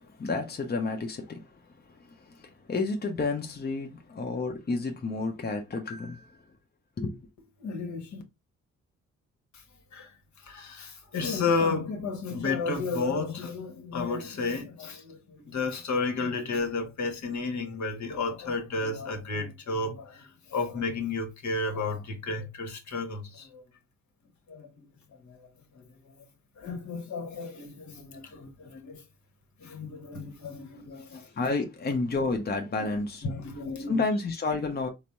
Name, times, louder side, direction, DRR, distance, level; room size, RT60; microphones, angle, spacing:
voice 1, 0.0-1.5 2.3-6.4 7.0-7.2 31.1-33.2 33.9-34.9, left 3 dB, 30° left, 0.8 m, -30 dB
voice 2, 7.6-8.2 9.9-10.1 10.4-23.6 24.5-24.8 25.2-25.5 25.7-26.1 26.6-29.0 29.6-31.5 32.8-32.9 33.2-34.0, left 3 dB, 55° left, 1.1 m, -32 dB
4.0 x 2.1 x 3.4 m
hypercardioid pair, 40°, 34 cm